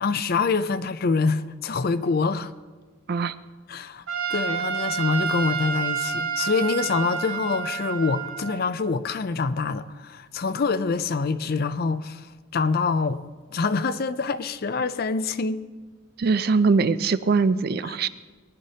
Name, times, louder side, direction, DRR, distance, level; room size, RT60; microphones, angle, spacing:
voice 1, 0.0-2.5 3.7-4.0 4.3-13.2 13.5-15.6, left 4 dB, 45° left, 0.4 m, -25 dB
Trumpet, 4.1-8.7, right 6 dB, 75° right, 1.7 m, -29 dB
voice 2, 16.2-18.1, right 4 dB, 50° right, 0.4 m, -22 dB
19.0 x 11.0 x 2.8 m
head